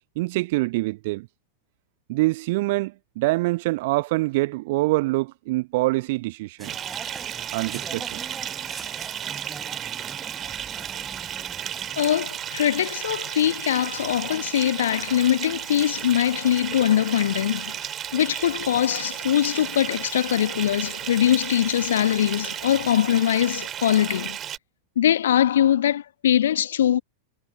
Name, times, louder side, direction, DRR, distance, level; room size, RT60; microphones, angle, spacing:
voice 1, 0.2-1.3 2.1-6.8 7.5-8.2, right 21 dB, 50° right, 1.1 m, -25 dB
sound 1, 6.6-12.0, right 3 dB, 10° right, 6.1 m, -42 dB
Bathtub (filling or washing) / Fill (with liquid), 6.6-24.6, right 10 dB, 30° right, 4.1 m, -34 dB
voice 2, 12.0-17.8 18.1-24.4 24.9-27.0, left 10 dB, 60° left, 1.5 m, -22 dB
figure-of-eight pair, 90°, 0 cm